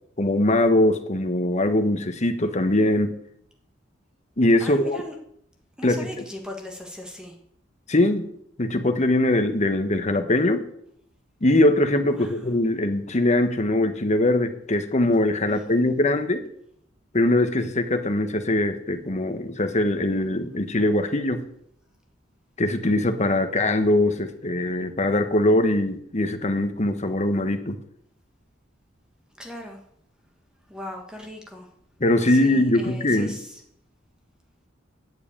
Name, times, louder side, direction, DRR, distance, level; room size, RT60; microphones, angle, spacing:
voice 1, 0.2-3.2 4.4-5.0 5.8-6.1 7.9-8.3 8.6-10.7 11.4-16.5 17.1-21.4 22.6-27.8 32.0-33.4, left 1 dB, 35° left, 8 dB, 1.2 m, -22 dB
voice 2, 4.6-5.1 5.8-7.3 12.1-12.5 15.5-15.8 29.4-29.8 30.7-31.7 32.3-33.6, left 1 dB, 5° right, 2 dB, 1.4 m, -39 dB
9.5 x 7.9 x 8.5 m, 0.71 s
head